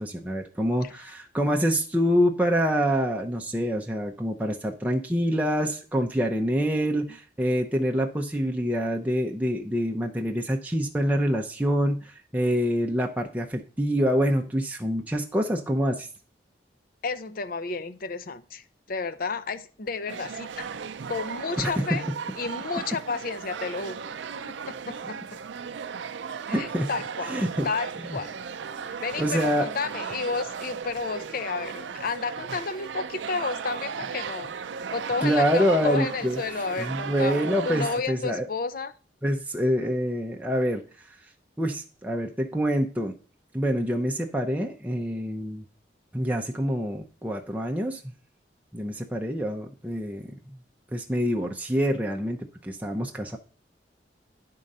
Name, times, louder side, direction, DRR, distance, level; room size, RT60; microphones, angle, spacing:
voice 1, 0.0-16.1 21.6-21.7 26.5-26.9 27.2-27.7 28.1-28.2 29.2-29.7 35.2-36.4 36.8-38.5 39.2-41.2 41.6-43.1 43.5-45.6 46.1-48.1 48.7-50.6 50.9-53.4, equal, 10° right, 0.6 m, -26 dB
voice 2, 17.0-20.6 21.1-22.1 22.4-24.0 24.5-25.2 26.5-27.4 27.6-28.3 28.9-34.5 34.9-38.9, left 4 dB, 55° left, 0.6 m, -32 dB
sound 1, 20.1-38.0, right 6 dB, 90° right, 0.5 m, -36 dB
10.0 x 3.8 x 5.4 m
head